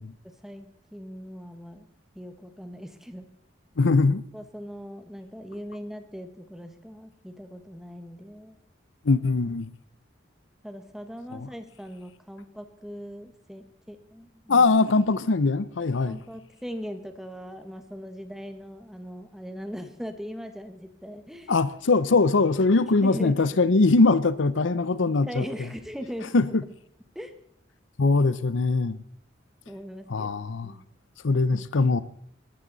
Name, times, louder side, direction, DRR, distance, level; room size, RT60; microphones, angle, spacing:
voice 1, 0.2-1.9 2.1-3.3 4.3-8.6 10.6-14.7 16.1-21.5 23.0-23.5 25.3-26.5 27.1-27.3 29.7-30.3 30.6-30.8, equal, ahead, 1.3 m, -40 dB
voice 2, 3.8-4.2 9.0-9.7 11.3-11.5 14.5-16.2 21.5-25.4 26.3-26.6 28.0-29.0 30.1-30.7 31.2-32.0, left 3 dB, 85° left, 0.7 m, -22 dB
22.0 x 13.0 x 4.0 m
head